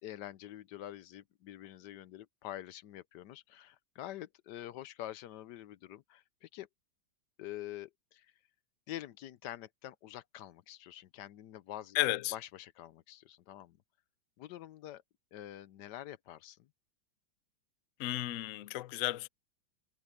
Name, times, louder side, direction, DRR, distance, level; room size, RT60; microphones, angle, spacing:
voice 1, 0.0-6.7 7.4-8.3 8.9-12.0 12.3-13.8 14.4-15.0 15.3-16.7, left 13 dB, 70° left, 1.3 m, -46 dB
voice 2, 11.9-12.3 18.0-19.3, left 17 dB, 85° left, 0.7 m, -33 dB
omnidirectional pair, 2.0 m